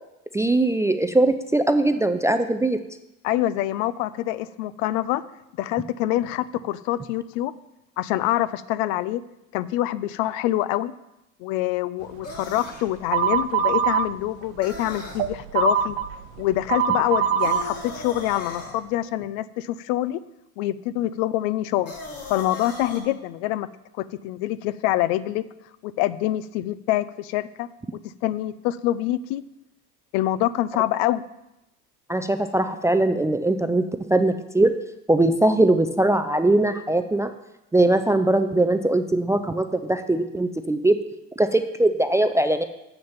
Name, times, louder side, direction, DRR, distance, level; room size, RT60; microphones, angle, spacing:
voice 1, 0.3-2.8 32.1-33.8 34.1-34.7 35.1-37.3 37.7-41.0 41.4-42.6, right 2 dB, 10° right, 9 dB, 0.3 m, -21 dB
voice 2, 3.2-5.2 5.6-7.5 8.0-9.2 9.5-10.9 11.4-16.0 16.4-20.2 20.6-21.9 22.3-23.7 24.0-25.4 25.8-27.7 28.2-29.4 30.1-31.2, left 14 dB, 65° left, 17 dB, 0.6 m, -25 dB
sound 1, 12.2-12.9 14.6-15.2 17.4-18.7 21.9-23.0, left 2 dB, 35° left, 2.7 m, -37 dB
sound 2, 13.1-14.1 14.6-17.6, right 8 dB, 75° right, 0.6 m, -22 dB
7.2 x 6.4 x 7.2 m, 0.92 s
hypercardioid pair, 85°, 41 cm